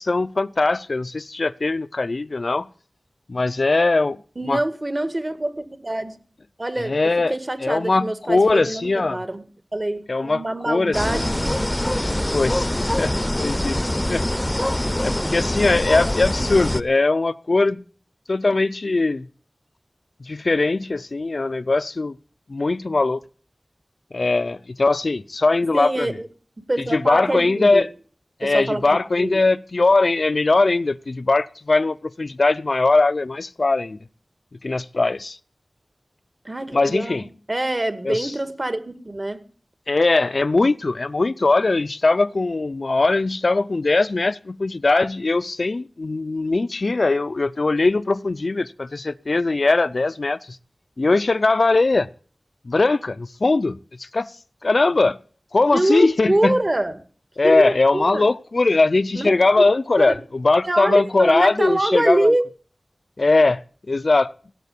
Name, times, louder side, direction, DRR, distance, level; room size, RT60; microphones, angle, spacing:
voice 1, 0.0-2.7 3.3-4.2 4.4-4.6 6.8-9.2 10.1-11.4 12.3-13.1 13.4-13.8 14.1-14.3 15.0-17.8 18.3-19.3 20.2-22.1 22.5-23.2 24.1-26.2 26.9-27.9 28.4-34.0 34.6-35.4 36.7-37.2 38.0-38.3 39.9-50.6 51.0-52.1 52.6-54.3 54.6-55.2 55.5-56.6 57.4-62.3 63.2-63.6 63.9-64.3, left 3 dB, 70° left, 0.6 m, -20 dB
voice 2, 4.4-6.2 6.6-6.9 7.3-9.4 9.7-11.6 14.9-15.3 25.7-26.3 26.7-27.8 28.4-29.4 36.5-39.4 55.7-57.0 57.4-58.3 59.2-59.3 59.6-59.7 60.0-60.2 60.7-62.4, right 1 dB, 40° right, 1.9 m, -25 dB
sound 1, 10.9-16.8, left 1 dB, 15° left, 0.8 m, -24 dB
16.5 x 7.8 x 8.4 m
wide cardioid pair, 45°, 0 cm